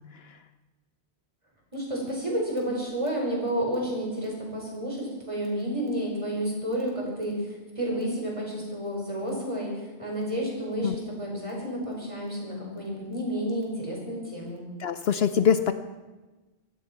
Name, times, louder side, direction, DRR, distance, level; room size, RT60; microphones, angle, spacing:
voice 1, 1.7-14.6, equal, 25° right, -2 dB, 4.8 m, -31 dB
voice 2, 14.8-15.7, left 7 dB, 65° left, 11 dB, 0.8 m, -23 dB
16.5 x 13.5 x 5.9 m, 1.2 s
omnidirectional pair, 1.2 m